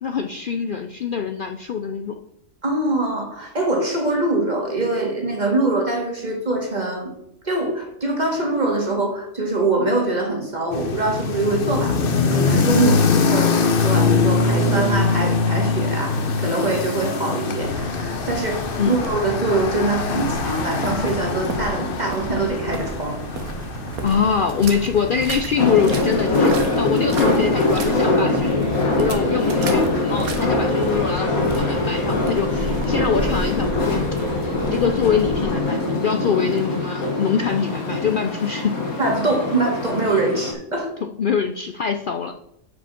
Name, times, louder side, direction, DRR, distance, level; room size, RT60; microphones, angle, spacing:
voice 1, 0.0-2.2 18.8-18.9 24.0-34.0 34.3-34.4 34.6-38.7 41.0-42.3, left 6 dB, 65° left, 5 dB, 0.5 m, -24 dB
voice 2, 2.6-7.1 7.4-23.2 39.0-40.9, right 2 dB, 30° right, 0 dB, 1.9 m, -23 dB
sound 1, 10.7-27.9, left 4 dB, 45° left, 0.9 m, -23 dB
sound 2, 17.6-35.4, right 2 dB, 90° right, 1.5 m, -32 dB
sound 3, 25.6-40.5, left 2 dB, 85° left, 1.8 m, -23 dB
8.1 x 5.1 x 5.8 m, 0.76 s
omnidirectional pair, 1.5 m